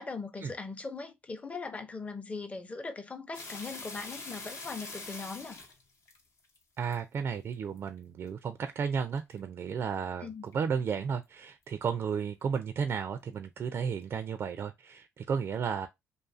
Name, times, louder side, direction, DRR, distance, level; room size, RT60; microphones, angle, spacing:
voice 1, 0.0-5.6 10.2-10.4, left 4 dB, 25° left, 0.6 m, -40 dB
sound 1, 3.3-7.0 7.5-7.9 8.3-8.4 8.8-9.4 9.9-10.0 10.5-10.6 10.8-11.1 11.7-11.8 12.5-12.6, left 3 dB, 65° left, 0.8 m, -44 dB
voice 2, 6.8-15.9, right 6 dB, 50° right, 0.4 m, -33 dB
2.6 x 2.4 x 2.5 m
cardioid pair, 80°, 5 cm